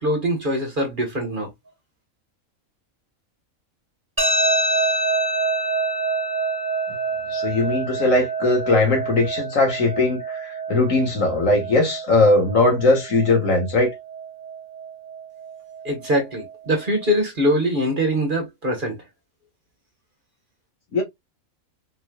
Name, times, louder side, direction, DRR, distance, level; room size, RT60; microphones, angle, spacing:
voice 1, 0.0-1.5 15.8-18.9, equal, 40° right, 1.2 m, -23 dB
sound 1, 4.2-17.2, right 3 dB, 10° right, 1.7 m, -27 dB
voice 2, 7.3-13.9 20.9-21.0, left 2 dB, 65° left, 1.8 m, -19 dB
4.5 x 3.1 x 2.2 m
omnidirectional pair, 1.5 m